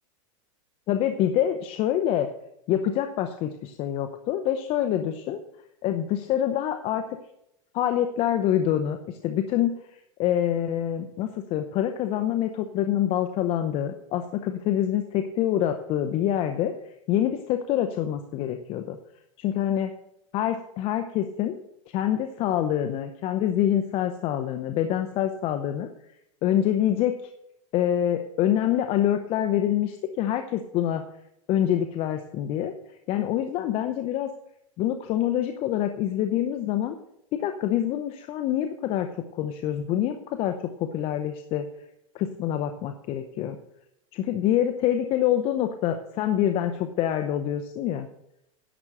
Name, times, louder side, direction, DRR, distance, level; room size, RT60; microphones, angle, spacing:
voice 1, 0.9-2.3 2.7-5.4 5.8-7.2 7.7-16.7 17.1-19.0 19.4-19.9 20.3-21.6 21.9-25.9 26.4-27.1 27.7-31.0 31.5-32.7 33.1-34.3 34.8-36.9 37.3-39.1 39.3-40.5 40.8-41.7 42.1-43.6 44.1-48.1, left 11 dB, 35° left, 7 dB, 0.7 m, -26 dB
11.0 x 7.2 x 6.6 m, 0.80 s
supercardioid pair, 150°, 17 cm